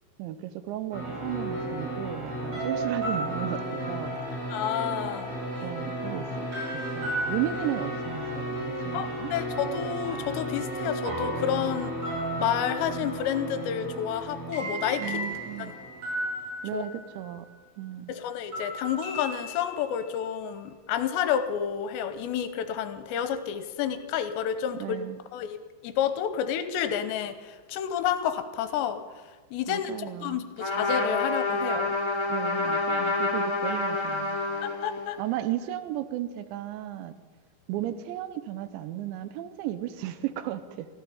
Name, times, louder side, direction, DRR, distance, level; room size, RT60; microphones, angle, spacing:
voice 1, 0.2-3.6 3.9-4.2 5.6-9.3 15.0-15.7 16.6-17.5 17.8-18.1 24.7-25.2 29.7-30.4 32.3-34.4 35.2-37.1 37.7-40.9, right 13 dB, 85° right, 11 dB, 3.0 m, -34 dB
sound 1, 0.9-17.5 18.5-20.2, right 1 dB, 35° right, 7.0 m, -33 dB
voice 2, 4.5-5.4 8.9-11.9 12.4-15.2 15.6-15.7 16.7-16.8 18.1-25.0 25.3-25.6 25.8-29.0 29.5-29.9 30.2-32.0 34.6-35.2, left 9 dB, 80° left, 10 dB, 2.9 m, -30 dB
Trumpet, 30.6-35.1, left 2 dB, 10° left, 1.3 m, -28 dB
14.5 x 14.0 x 7.0 m, 1.4 s
omnidirectional pair, 5.4 m